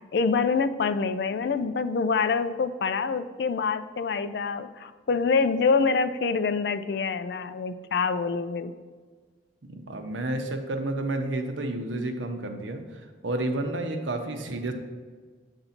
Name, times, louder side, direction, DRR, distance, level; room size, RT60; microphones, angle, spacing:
voice 1, 0.0-8.7, left 5 dB, 60° left, 11 dB, 0.3 m, -26 dB
voice 2, 9.7-14.7, right 2 dB, 85° right, 4 dB, 0.8 m, -31 dB
7.9 x 2.7 x 5.7 m, 1.4 s
head